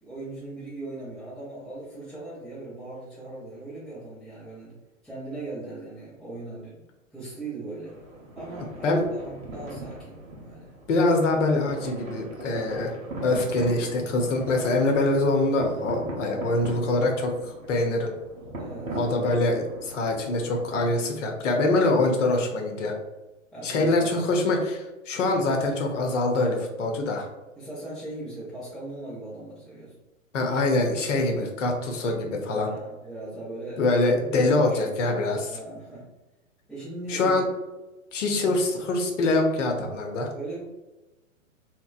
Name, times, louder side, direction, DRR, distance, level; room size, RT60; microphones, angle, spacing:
voice 1, 0.0-4.7 5.0-6.8 7.1-8.0 8.3-10.7 18.6-19.0 23.5-24.2 27.6-29.9 32.5-33.8 34.2-34.9 35.5-36.1 36.7-37.3 38.4-38.6 40.3-40.6, right 2 dB, ahead, -14 dB, 0.3 m, -39 dB
sound 1, 7.8-21.1, right 2 dB, 75° right, 0.8 m, -39 dB
voice 2, 10.9-12.9 13.2-18.1 18.9-22.9 23.6-27.3 30.3-32.7 33.8-35.6 37.1-37.5 38.1-40.3, left 2 dB, 65° left, 2 dB, 0.7 m, -24 dB
2.8 x 2.1 x 2.3 m, 1.1 s
figure-of-eight pair, 115°, 40 cm